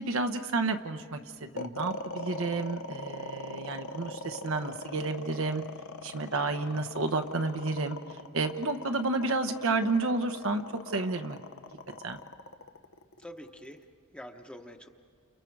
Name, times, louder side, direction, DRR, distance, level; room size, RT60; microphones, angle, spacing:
voice 1, 0.0-5.6 6.0-8.0 8.3-10.6 10.9-11.4 12.0-12.2, right 3 dB, 70° right, 6 dB, 1.0 m, -31 dB
sound 1, 1.6-13.8, left 2 dB, 70° left, 1.0 m, -41 dB
voice 2, 6.2-6.8 13.2-13.8 14.1-14.9, equal, 5° left, 4 dB, 1.0 m, -47 dB
30.0 x 29.0 x 4.7 m, 2.3 s
head